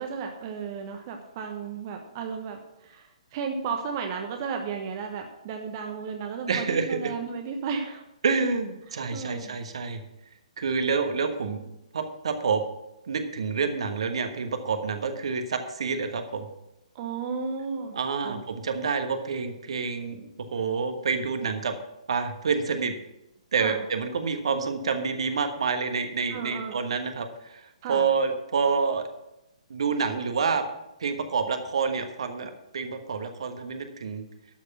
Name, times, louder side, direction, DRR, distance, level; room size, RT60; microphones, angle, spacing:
voice 1, 0.0-8.0 9.1-9.6 16.9-18.0 18.2-18.4 23.6-23.8 26.3-26.8 27.8-28.1, right 5 dB, 30° right, 4 dB, 1.1 m, -34 dB
voice 2, 6.5-7.1 8.2-10.0 10.6-11.6 11.9-12.6 13.1-16.4 17.9-21.7 22.1-22.9 23.5-27.6 27.9-29.1 29.7-30.6 31.0-34.2, right 5 dB, 55° right, 7 dB, 1.3 m, -28 dB
12.0 x 6.6 x 6.0 m, 0.90 s
figure-of-eight pair, 130°, 4 cm